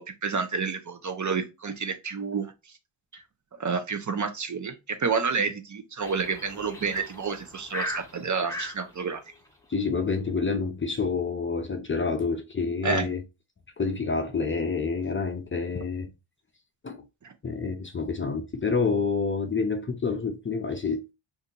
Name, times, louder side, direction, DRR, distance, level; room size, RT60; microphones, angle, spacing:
voice 1, 0.0-2.5 3.1-3.2 3.6-9.2 12.8-13.1, right 5 dB, 40° right, 0.7 m, -29 dB
sound 1, 6.0-8.8, equal, 5° left, 0.8 m, -37 dB
voice 2, 9.7-13.2 13.8-16.1 16.8-17.1 17.4-21.1, left 4 dB, 25° left, 0.5 m, -28 dB
2.7 x 2.6 x 3.7 m
cardioid pair, 75°, 47 cm